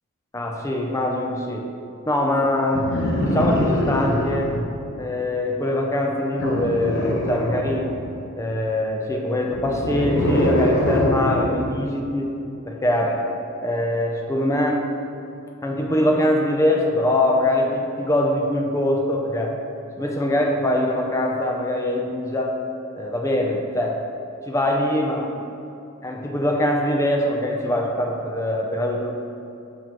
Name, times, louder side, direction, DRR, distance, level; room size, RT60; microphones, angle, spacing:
voice 1, 0.3-1.7 2.1-3.0 3.3-4.6 5.0-7.9 8.4-12.4 12.7-13.2 13.6-14.9 15.6-19.6 20.0-22.6 22.9-24.0 24.5-25.4 26.0-29.1, left 1 dB, 15° left, 1 dB, 0.5 m, -23 dB
sound 1, 2.7-4.7 6.4-8.1 9.4-11.7 13.0-13.2, left 1 dB, 60° left, 0.8 m, -23 dB
7.1 x 6.0 x 3.0 m, 2.7 s
head